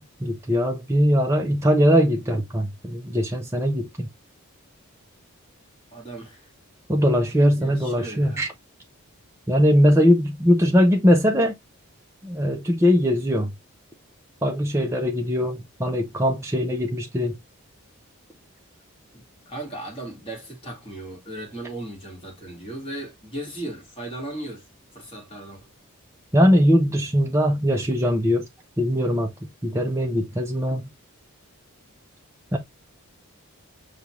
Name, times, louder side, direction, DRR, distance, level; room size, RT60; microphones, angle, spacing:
voice 1, 0.2-4.1 6.9-8.5 9.5-11.5 12.2-13.5 14.4-17.4 26.3-28.5 28.8-29.3 29.6-30.9 32.5-32.6, equal, 10° right, 0.6 m, -20 dB
voice 2, 5.9-6.5 7.6-8.5 19.1-24.7 24.9-25.7, right 1 dB, 25° left, 1.9 m, -37 dB
5.5 x 2.4 x 3.0 m
head